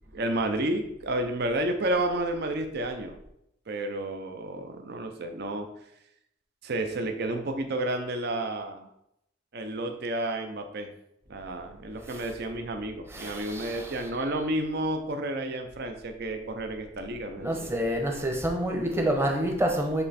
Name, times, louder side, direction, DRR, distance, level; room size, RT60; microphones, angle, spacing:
voice 1, 0.1-3.2 3.7-5.7 6.6-8.9 9.5-10.9 11.3-17.7, right 1 dB, 55° right, 5 dB, 0.7 m, -31 dB
voice 2, 13.1-14.0 17.4-20.0, right 1 dB, 15° right, 2 dB, 0.9 m, -28 dB
7.1 x 3.3 x 4.2 m, 0.78 s
head